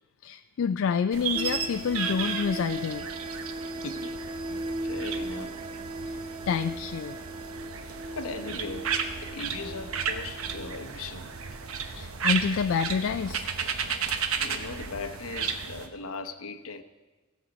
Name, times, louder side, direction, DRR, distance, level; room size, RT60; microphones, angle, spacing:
voice 1, 0.2-3.1 6.1-6.2 6.5-7.2 12.0-13.4, left 6 dB, 65° left, 0.3 m, -28 dB
sound 1, 1.1-15.9, right 6 dB, 85° right, 1.0 m, -34 dB
sound 2, 1.3-11.8, right 1 dB, 25° right, 0.4 m, -38 dB
voice 2, 3.8-4.2 4.4-4.5 4.8-5.6 8.2-8.9 9.2-11.3 14.4-16.8, left 3 dB, 90° left, 0.9 m, -38 dB
16.5 x 7.6 x 5.2 m
head